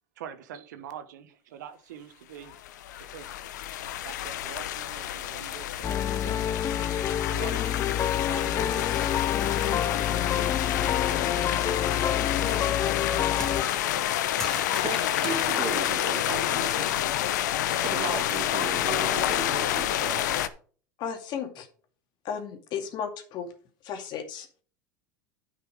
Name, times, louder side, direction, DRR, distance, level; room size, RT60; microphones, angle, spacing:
voice 1, 0.2-2.6 3.0-3.6 4.0-6.4 7.3-9.1 9.6-10.1, right 8 dB, 80° right, 1.1 m, -44 dB
sound 1, 2.5-20.5, left 12 dB, 75° left, 0.8 m, -29 dB
sound 2, 5.8-13.6, left 10 dB, 30° left, 0.5 m, -28 dB
sound 3, 12.4-17.4, left 1 dB, 5° left, 2.2 m, -41 dB
voice 2, 14.8-16.9 17.8-20.4, right 6 dB, 40° right, 2.3 m, -36 dB
voice 3, 21.0-21.7 22.2-23.5 23.8-24.6, left 7 dB, 50° left, 2.3 m, -34 dB
9.8 x 5.7 x 5.0 m
hypercardioid pair, 90°, 10 cm